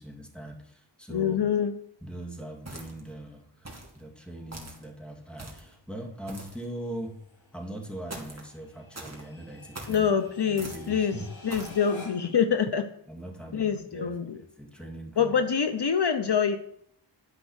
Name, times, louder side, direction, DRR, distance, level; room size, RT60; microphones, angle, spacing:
voice 1, 0.0-1.4 2.0-7.2 7.5-10.1 10.5-11.3 13.1-15.3, right 1 dB, ahead, 1 dB, 2.3 m, -41 dB
voice 2, 1.1-1.7 9.9-12.9 13.5-14.4 15.2-16.6, left 7 dB, 60° left, 8 dB, 0.8 m, -25 dB
sound 1, 2.3-12.4, left 2 dB, 90° left, 4.8 m, -53 dB
sound 2, 2.7-3.1 3.7-4.0 4.5-4.8 5.4-5.7 6.3-6.6 8.1-8.5 8.9-9.2 9.7-10.0 10.6-10.9 11.5-11.8, right 2 dB, 35° right, 2.3 m, -42 dB
12.0 x 5.4 x 6.4 m, 0.68 s
wide cardioid pair, 75°, 45 cm